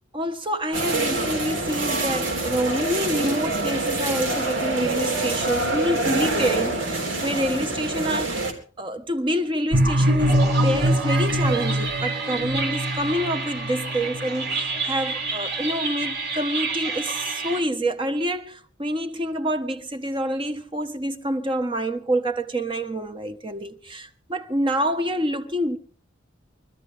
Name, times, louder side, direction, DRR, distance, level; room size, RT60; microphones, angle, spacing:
voice 1, 0.1-25.8, right 1 dB, 25° right, 1.3 m, -27 dB
sound 1, 0.7-8.5, right 2 dB, 80° right, 3.8 m, -26 dB
sound 2, 9.7-17.6, right 1 dB, 55° right, 2.4 m, -24 dB
24.0 x 13.5 x 3.6 m
head